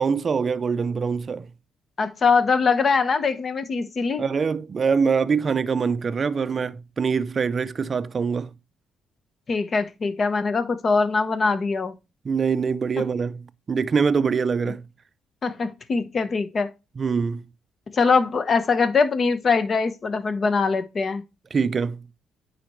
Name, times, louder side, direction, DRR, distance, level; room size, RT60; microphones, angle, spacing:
voice 1, 0.0-1.5 4.2-8.5 12.2-14.8 17.0-17.4 21.5-22.0, right 5 dB, 40° right, 0.5 m, -24 dB
voice 2, 2.0-4.2 9.5-11.9 15.4-16.7 17.9-21.2, left 4 dB, 45° left, 1.0 m, -22 dB
9.5 x 4.2 x 3.1 m
cardioid pair, 90°, 0 cm